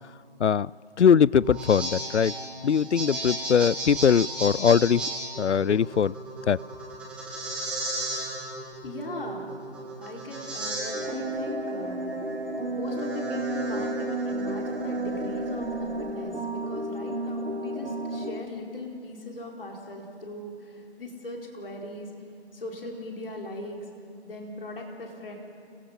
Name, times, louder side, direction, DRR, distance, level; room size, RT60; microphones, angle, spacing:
voice 1, 0.4-0.7 1.0-2.3 2.6-5.1 5.4-6.1 6.5-6.6, left 7 dB, 85° left, 24 dB, 0.5 m, -21 dB
sound 1, 1.4-16.1, right 2 dB, 5° right, 1.7 m, -35 dB
voice 2, 8.8-9.5 10.0-12.0 12.7-22.1 22.5-23.8 24.2-25.3, left 1 dB, 55° left, 0 dB, 4.4 m, -39 dB
sound 2, 10.9-18.4, right 2 dB, 80° right, 2.3 m, -32 dB
29.5 x 24.5 x 5.8 m, 2.5 s
figure-of-eight pair, 155°, 34 cm